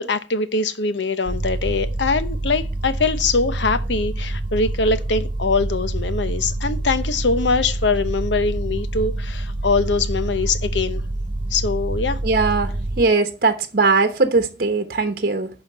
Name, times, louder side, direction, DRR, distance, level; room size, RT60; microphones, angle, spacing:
voice 1, 0.0-11.0 11.5-12.2, left 3 dB, 85° left, 0.9 m, -22 dB
sound 1, 1.3-13.1, right 1 dB, 30° right, 0.7 m, -26 dB
voice 2, 12.2-15.5, right 3 dB, 55° right, 1.0 m, -20 dB
11.5 x 4.5 x 5.6 m
head